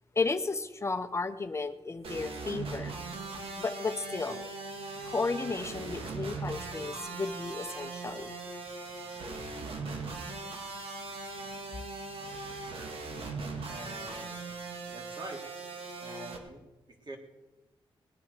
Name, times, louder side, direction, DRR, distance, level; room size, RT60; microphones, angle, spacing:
voice 1, 0.1-3.0 3.6-4.5 5.0-8.3, left 3 dB, 30° left, 8 dB, 0.9 m, -33 dB
sound 1, 2.0-16.4, right 3 dB, 80° right, 2.4 m, -40 dB
voice 2, 13.7-14.4 14.9-15.4 16.0-17.2, right 1 dB, 50° right, 1 dB, 3.6 m, -45 dB
20.5 x 9.2 x 6.8 m, 1.1 s
cardioid pair, 80°, 9 cm